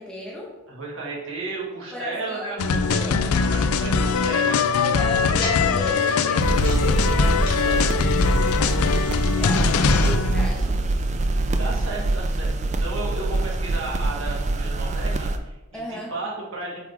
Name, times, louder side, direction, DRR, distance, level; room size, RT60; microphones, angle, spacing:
voice 1, 0.0-0.6 1.9-2.5 2.9-3.2 4.1-4.5 4.7-8.1 8.6-8.9 9.4-10.8 15.7-16.1, left 1 dB, 5° left, -4 dB, 1.2 m, -35 dB
voice 2, 0.7-4.6 7.0-7.3 10.0-10.1 11.5-16.8, right 3 dB, 60° right, -4 dB, 1.9 m, -34 dB
sound 1, 2.6-10.5, left 5 dB, 80° left, 0.4 m, -21 dB
sound 2, 3.3-9.4, left 2 dB, 25° left, 2.2 m, -41 dB
sound 3, 6.4-15.4, right 2 dB, 30° right, 0.4 m, -24 dB
8.2 x 4.8 x 3.5 m, 1.0 s
head